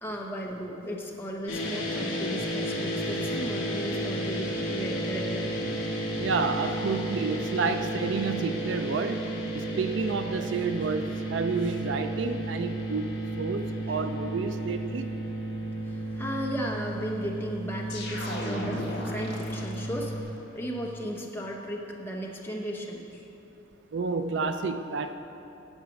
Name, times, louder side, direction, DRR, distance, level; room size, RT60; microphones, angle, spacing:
voice 1, 0.0-5.8 13.9-14.0 15.8-23.2, equal, 10° left, -1 dB, 0.8 m, -35 dB
sound 1, 1.5-20.2, right 1 dB, 85° left, 2.3 m, -33 dB
voice 2, 6.2-9.2 9.5-13.1 13.4-15.1 23.9-25.1, right 4 dB, 65° right, 9 dB, 0.4 m, -30 dB
sound 2, 17.9-20.1, left 1 dB, 55° left, 1.7 m, -36 dB
8.9 x 7.5 x 6.1 m, 3.0 s
head